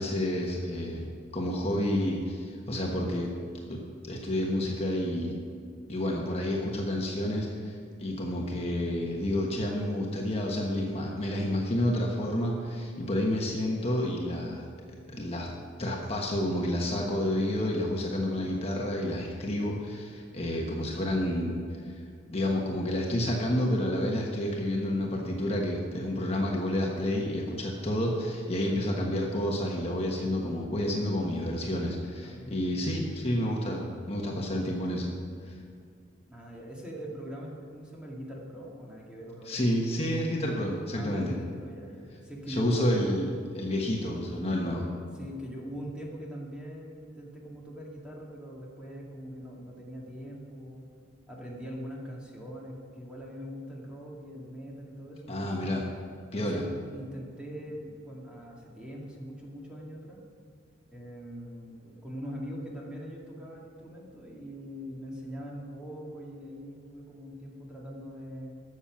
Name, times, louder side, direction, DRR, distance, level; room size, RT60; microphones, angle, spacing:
voice 1, 0.0-3.3 3.7-5.4 5.9-14.7 15.1-15.5 15.8-21.9 22.3-35.1 35.4-35.5 39.4-41.3 42.5-43.3 43.5-44.9 55.3-55.8 56.3-56.6, left 1 dB, 30° left, -1 dB, 1.3 m, -30 dB
voice 2, 32.2-32.9 36.3-39.6 40.9-42.9 45.2-50.9 51.3-55.8 56.3-60.2 60.9-68.6, equal, 5° right, -3 dB, 2.1 m, -42 dB
12.5 x 7.2 x 7.3 m, 2.3 s
head